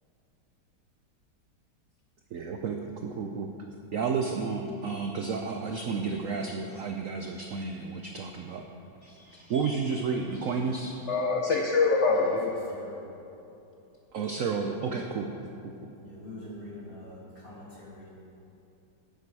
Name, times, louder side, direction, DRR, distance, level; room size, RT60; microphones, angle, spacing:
voice 1, 2.3-3.5 3.9-8.6 9.0-9.2 9.5-11.0 14.1-15.3, right 5 dB, 80° right, 3 dB, 0.7 m, -31 dB
voice 2, 9.2-9.7 10.4-10.6 11.1-12.7, left 4 dB, 60° left, 0 dB, 0.7 m, -26 dB
voice 3, 12.1-12.4 12.7-13.0 16.0-18.1, left 1 dB, 25° left, -5 dB, 2.4 m, -44 dB
12.0 x 9.2 x 4.7 m, 2.9 s
omnidirectional pair, 2.2 m